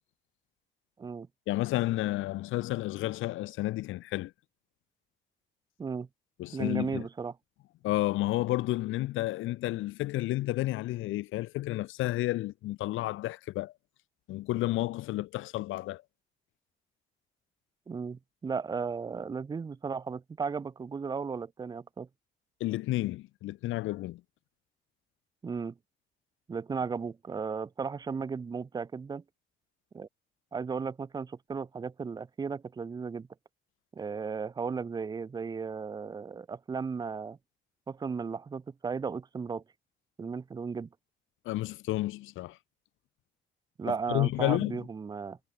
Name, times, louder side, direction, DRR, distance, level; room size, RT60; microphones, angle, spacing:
voice 1, 1.5-4.3 6.4-7.0 7.8-13.7 14.3-16.0 22.6-24.2 41.4-42.6 43.9-44.9, left 17 dB, 80° left, 0.6 m, -31 dB
voice 2, 6.5-7.3 17.9-22.1 25.4-25.7 26.5-29.2 29.9-30.1 30.5-33.3 34.0-37.4 37.9-39.6 40.2-40.9 43.8-45.4, right 5 dB, 20° right, 0.4 m, -35 dB
cardioid pair, 90°, 20 cm